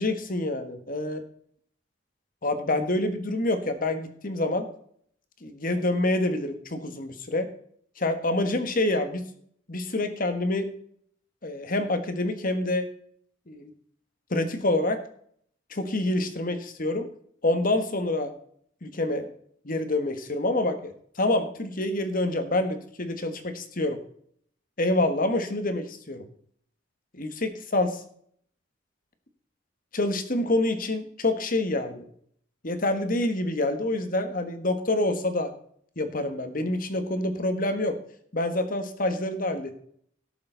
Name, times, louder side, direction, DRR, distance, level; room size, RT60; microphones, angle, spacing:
voice 1, 0.0-1.2 2.4-4.7 5.4-7.5 8.0-9.2 9.7-10.7 11.4-12.9 13.5-13.7 14.3-15.0 15.7-17.1 17.4-18.3 18.8-19.3 19.6-20.9 21.2-24.0 24.8-26.2 27.1-28.0 29.9-32.0 32.6-35.5 36.0-38.0 38.3-39.8, left 2 dB, 45° left, 8 dB, 1.5 m, -27 dB
17.0 x 6.8 x 4.0 m, 0.62 s
head